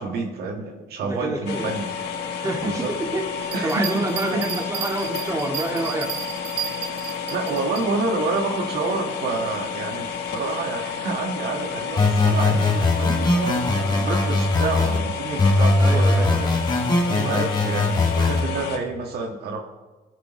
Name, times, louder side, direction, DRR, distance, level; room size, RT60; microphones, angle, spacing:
voice 1, 0.0-1.9 2.6-2.9 3.5-4.1 4.3-4.4 7.3-16.5 17.2-19.7, right 3 dB, 70° right, 2 dB, 1.7 m, -28 dB
voice 2, 1.0-1.7 2.3-6.1 15.8-16.6 17.1-17.3, right 2 dB, 20° right, 1 dB, 2.2 m, -28 dB
sound 1, 1.5-18.8, left 6 dB, 85° left, 1.2 m, -31 dB
Bell, 3.4-7.8 8.3-8.4, right 9 dB, 85° right, 2.1 m, -32 dB
sound 2, 12.0-15.0 15.4-18.4, left 2 dB, 25° left, 2.0 m, -20 dB
22.0 x 9.6 x 3.1 m, 1.2 s
cardioid pair, 110°, 17 cm